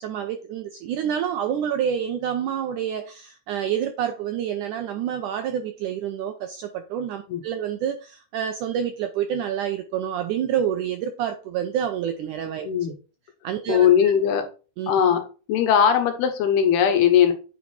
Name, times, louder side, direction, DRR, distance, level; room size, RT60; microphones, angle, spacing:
voice 1, 0.0-12.7 13.4-14.1 14.8-14.9, right 9 dB, 80° right, 6 dB, 1.8 m, -28 dB
voice 2, 13.7-14.5 14.9-15.2 15.5-17.3, left 8 dB, 90° left, 6 dB, 3.2 m, -19 dB
9.2 x 4.8 x 4.3 m, 0.35 s
omnidirectional pair, 4.4 m